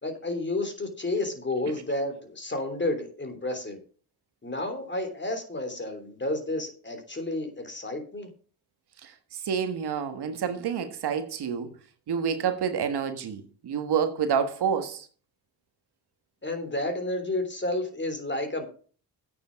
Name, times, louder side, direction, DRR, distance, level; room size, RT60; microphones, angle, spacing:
voice 1, 0.0-3.8 4.4-8.3 16.4-18.6, left 2 dB, 25° left, 3.2 m, -31 dB
voice 2, 9.0-11.7 12.1-15.1, right 7 dB, 65° right, 1.5 m, -28 dB
8.9 x 7.1 x 6.3 m
cardioid pair, 75°, 42 cm